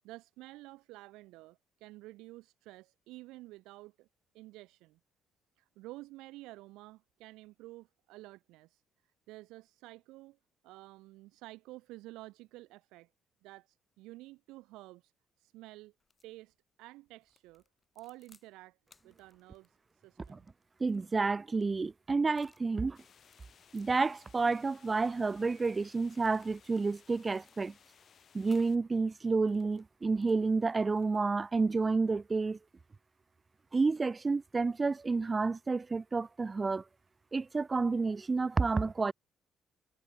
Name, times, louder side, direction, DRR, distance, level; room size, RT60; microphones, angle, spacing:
voice 1, 0.0-4.1 4.3-5.0 5.6-8.8 9.3-10.4 10.6-13.1 13.4-15.1 15.4-15.9 16.2-17.6 17.9-18.8 19.0-20.5, right 19 dB, 90° right, 1.0 m, -51 dB
sound 1, 16.0-16.3 17.2-18.5 18.8-22.7 23.2-26.9 27.2-27.9 28.4-28.8 29.3-31.4, left 4 dB, 25° left, 4.0 m, -68 dB
voice 2, 20.8-23.0 23.7-27.7 28.3-32.6 33.7-36.8 37.3-39.1, right 4 dB, 25° right, 0.4 m, -30 dB
sound 2, 22.9-28.8, left 8 dB, 50° left, 2.7 m, -62 dB
cardioid pair, 85°, 0 cm